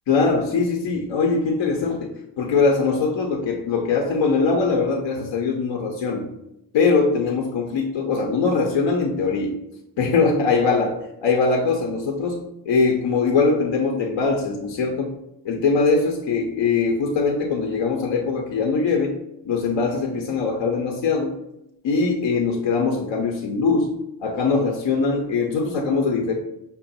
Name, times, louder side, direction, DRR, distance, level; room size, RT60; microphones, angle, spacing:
voice 1, 0.1-2.1 2.4-6.3 6.7-9.5 10.0-15.1 15.4-19.1 19.5-21.4 21.8-23.9 24.2-26.3, left 4 dB, 70° left, 1 dB, 0.8 m, -22 dB
5.7 x 2.1 x 4.0 m, 0.83 s
supercardioid pair, 50°, 46 cm